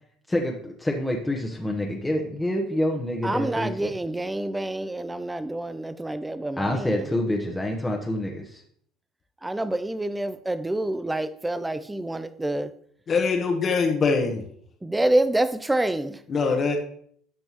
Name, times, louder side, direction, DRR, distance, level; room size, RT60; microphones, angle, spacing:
voice 1, 0.3-3.9 6.6-8.6, left 1 dB, 10° left, 1.3 m, -27 dB
voice 2, 3.2-7.1 9.4-12.7 14.8-16.2, right 1 dB, 10° right, 0.6 m, -27 dB
voice 3, 13.1-14.4 16.3-16.8, left 4 dB, 40° left, 1.3 m, -23 dB
12.5 x 5.2 x 3.1 m
hypercardioid pair, 65°, 0 cm